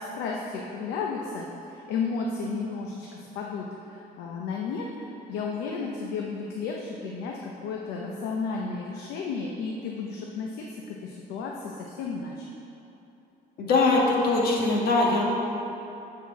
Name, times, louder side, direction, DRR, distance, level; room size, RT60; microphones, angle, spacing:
voice 1, 0.0-12.5, left 4 dB, 90° left, -1 dB, 0.7 m, -33 dB
voice 2, 13.6-15.2, left 3 dB, 65° left, -2 dB, 1.5 m, -22 dB
7.4 x 4.5 x 6.0 m, 3.0 s
cardioid pair, 110°, 17 cm